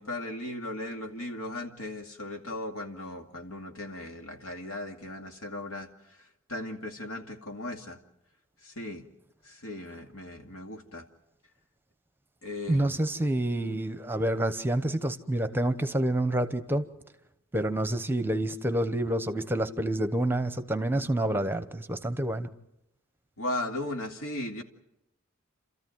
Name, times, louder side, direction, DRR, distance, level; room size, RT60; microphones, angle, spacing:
voice 1, 0.0-5.9 6.5-8.0 8.6-9.0 9.4-11.0 12.4-13.1 13.6-13.7 23.4-24.6, left 1 dB, 80° left, 4 dB, 2.4 m, -37 dB
voice 2, 12.7-16.8 17.5-22.5, right 1 dB, 10° right, 10 dB, 1.0 m, -28 dB
29.5 x 14.0 x 9.3 m, 0.85 s
head